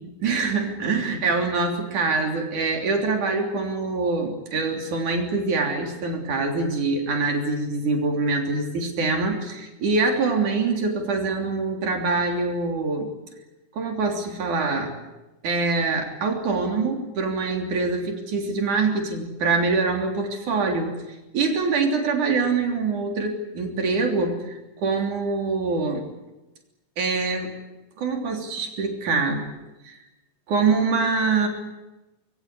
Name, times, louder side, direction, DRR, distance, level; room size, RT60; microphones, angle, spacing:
voice 1, 0.2-13.1 13.8-14.9 15.4-20.9 21.3-26.0 27.0-27.5 28.0-29.4 29.8-30.0 30.5-31.5, right 4 dB, 70° right, 2 dB, 4.8 m, -24 dB
25.5 x 22.0 x 8.4 m, 1.0 s
omnidirectional pair, 3.6 m